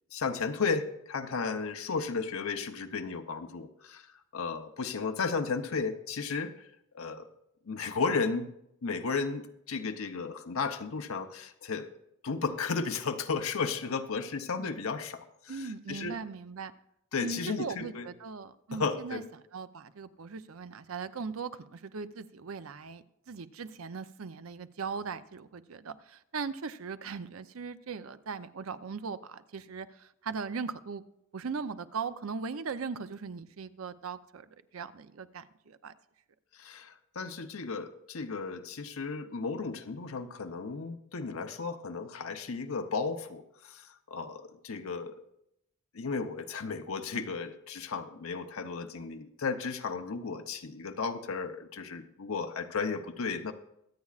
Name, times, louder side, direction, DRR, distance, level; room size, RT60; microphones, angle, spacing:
voice 1, 0.1-6.6 6.9-7.3 7.7-8.5 8.8-11.9 12.2-16.2 17.1-18.1 18.7-19.3 36.5-45.2 45.9-53.5, left 4 dB, 80° left, 6 dB, 0.8 m, -34 dB
voice 2, 15.5-16.7 17.2-19.2 19.5-31.0 31.3-35.9, right 5 dB, 80° right, 12 dB, 0.6 m, -39 dB
24.0 x 8.3 x 2.4 m, 0.80 s
head